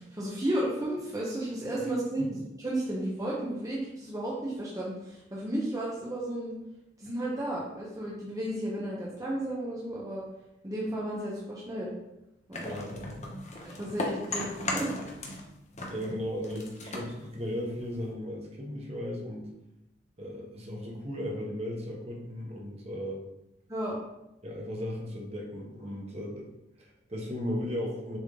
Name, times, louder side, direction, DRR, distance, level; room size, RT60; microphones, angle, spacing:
voice 1, 0.0-6.5 7.0-10.2 10.6-11.9 12.5-12.7 13.6-15.0 23.7-24.0, right 1 dB, 20° right, -5 dB, 1.0 m, -33 dB
sound 1, 12.5-15.5 15.7-18.1, left 2 dB, 35° left, 1.0 m, -36 dB
voice 2, 12.5-13.2 15.9-19.5 20.2-23.2 24.4-26.5 26.8-28.2, equal, 35° right, -1 dB, 1.2 m, -36 dB
7.1 x 3.7 x 3.8 m, 0.89 s
head